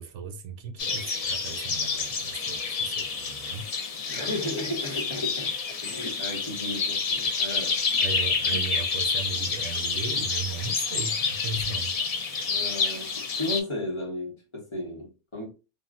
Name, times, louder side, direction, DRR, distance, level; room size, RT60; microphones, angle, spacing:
voice 1, 0.0-3.7 8.0-12.0, right 5 dB, 85° right, 0.9 m, -37 dB
sound 1, 0.8-13.6, left 4 dB, 55° left, 0.4 m, -28 dB
voice 2, 4.1-7.8 12.5-15.5, left 1 dB, 30° left, 0.8 m, -34 dB
3.6 x 2.1 x 2.4 m
omnidirectional pair, 1.2 m